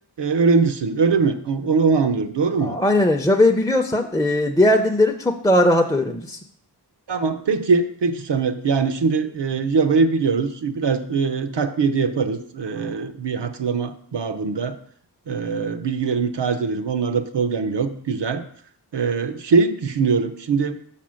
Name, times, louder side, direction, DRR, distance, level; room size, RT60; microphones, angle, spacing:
voice 1, 0.2-2.8 7.1-14.8 15.3-18.4 18.9-20.8, right 4 dB, 90° right, 8 dB, 0.7 m, -22 dB
voice 2, 2.6-6.4, left 1 dB, 10° left, 3 dB, 0.5 m, -18 dB
5.9 x 4.3 x 6.3 m, 0.62 s
wide cardioid pair, 65°, 41 cm